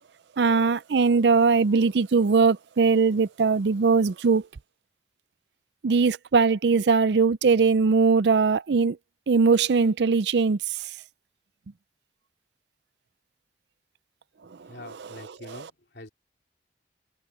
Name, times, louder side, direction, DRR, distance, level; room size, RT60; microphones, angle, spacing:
voice 1, 0.4-4.4 5.8-9.0 9.3-10.6, right 4 dB, 75° right, 0.5 m, -20 dB
voice 2, 14.6-16.1, left 2 dB, 70° left, 3.3 m, -45 dB
head